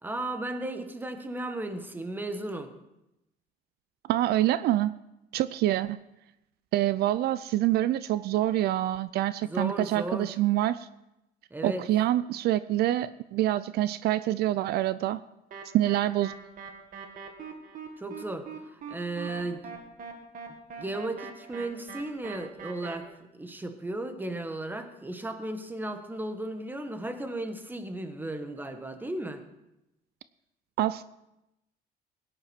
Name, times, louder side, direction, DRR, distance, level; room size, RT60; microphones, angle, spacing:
voice 1, 0.0-2.7 9.4-10.3 11.5-11.9 18.0-19.6 20.8-29.4, right 1 dB, 10° right, 8 dB, 1.4 m, -35 dB
voice 2, 4.1-4.9 5.3-6.0 6.7-10.9 11.6-15.2 15.7-16.3 30.8-31.0, right 14 dB, 70° right, 15 dB, 0.5 m, -26 dB
sound 1, 15.5-23.0, right 5 dB, 55° right, 1.9 m, -42 dB
16.5 x 10.5 x 4.5 m, 0.89 s
cardioid pair, 110°, 17 cm